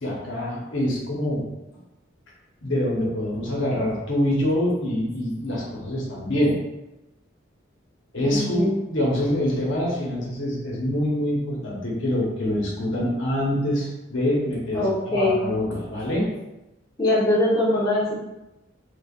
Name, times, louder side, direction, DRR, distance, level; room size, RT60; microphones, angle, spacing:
voice 1, 0.0-1.5 2.6-6.6 8.1-16.3, left 1 dB, 80° left, -4 dB, 1.0 m, -25 dB
voice 2, 8.2-8.7 14.7-15.4 17.0-18.1, left 1 dB, 20° left, -8 dB, 1.0 m, -22 dB
4.5 x 2.4 x 2.4 m, 0.96 s
head